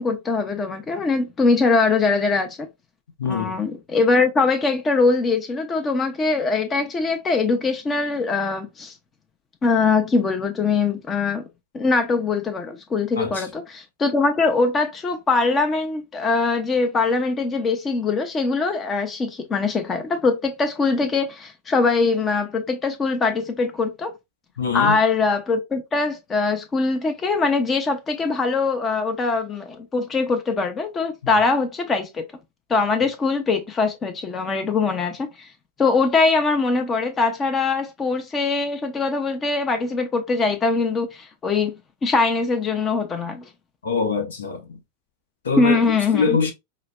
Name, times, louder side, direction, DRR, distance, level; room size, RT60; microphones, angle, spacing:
voice 1, 0.0-2.7 3.3-8.9 9.6-11.4 11.7-24.1 24.7-32.2 32.7-35.5 35.8-41.7 42.0-43.5 45.6-46.4, left 4 dB, 20° left, 0.5 m, -22 dB
voice 2, 3.2-3.6 13.2-13.5 24.6-25.0 43.8-44.8 45.4-45.8 46.1-46.5, left 5 dB, 65° left, 0.7 m, -23 dB
4.8 x 2.0 x 2.2 m
figure-of-eight pair, 90°, 0 cm